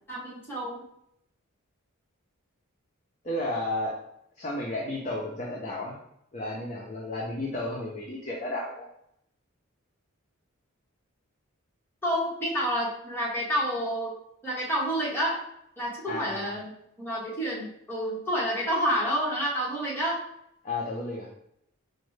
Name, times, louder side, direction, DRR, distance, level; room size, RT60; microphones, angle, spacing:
voice 1, 0.1-0.8 12.0-14.1 14.4-15.4 15.8-16.7 17.0-20.2, equal, 10° left, -7 dB, 1.0 m, -29 dB
voice 2, 3.2-4.0 4.4-6.0 6.3-8.9 16.1-16.5 20.6-21.3, left 1 dB, 35° left, -3 dB, 0.5 m, -32 dB
5.0 x 2.1 x 3.1 m, 0.76 s
head